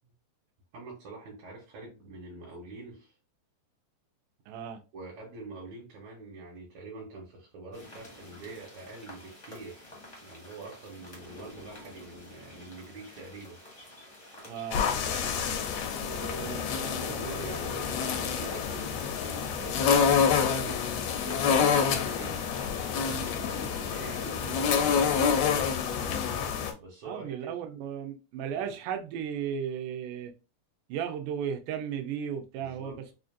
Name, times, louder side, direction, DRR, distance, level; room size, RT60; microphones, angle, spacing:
voice 1, 0.7-3.1 4.9-9.9 10.2-13.6 16.0-22.4 23.4-25.7 26.8-27.5 28.5-28.7 32.6-33.1, right 3 dB, 70° right, 2.3 m, -45 dB
voice 2, 4.5-4.8 14.4-15.3 16.1-16.7 27.0-30.3 30.9-33.1, right 8 dB, 90° right, 2.2 m, -35 dB
sound 1, 7.7-25.9, left 1 dB, 60° left, 0.3 m, -47 dB
sound 2, 14.7-26.7, left 7 dB, 80° left, 1.5 m, -27 dB
5.0 x 2.5 x 2.5 m
omnidirectional pair, 3.7 m